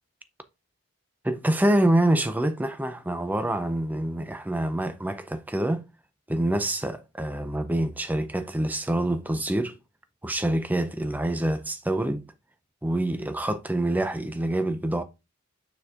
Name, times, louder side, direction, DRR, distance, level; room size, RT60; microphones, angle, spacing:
voice 1, 1.2-5.8 6.3-9.8 10.2-12.2 12.8-15.0, right 1 dB, 5° right, 0.4 m, -26 dB
6.7 x 6.1 x 2.4 m
head